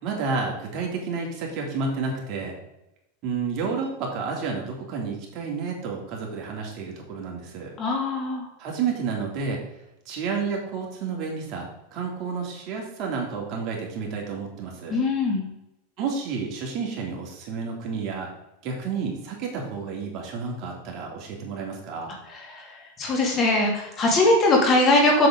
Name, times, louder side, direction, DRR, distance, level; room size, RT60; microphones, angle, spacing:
voice 1, 0.0-2.5 3.2-7.7 8.6-9.6 10.1-15.0 16.0-18.3 18.6-22.1, right 5 dB, 45° right, 0 dB, 2.7 m, -30 dB
voice 2, 7.8-8.4 14.9-15.4 22.5-22.7 23.0-25.3, left 2 dB, 30° left, 0 dB, 2.5 m, -21 dB
7.7 x 7.7 x 3.8 m, 0.89 s
supercardioid pair, 135°, 0 cm